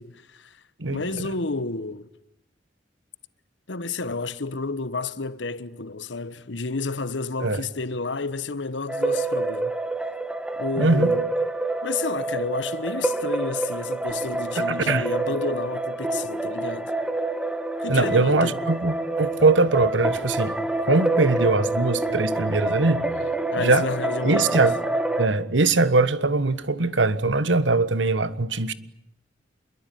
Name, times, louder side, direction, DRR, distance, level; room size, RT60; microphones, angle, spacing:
voice 1, 0.0-2.1 3.7-9.8 10.6-11.3 11.8-16.9 17.8-18.6 23.5-24.7, left 3 dB, 75° left, 1.2 m, -31 dB
sound 1, 8.9-25.3, right 2 dB, 5° right, 2.0 m, -27 dB
voice 2, 10.8-11.1 14.7-15.1 17.9-23.0 23.6-23.9 24.2-24.8 25.2-28.7, right 3 dB, 85° right, 1.5 m, -21 dB
27.0 x 22.5 x 9.4 m
head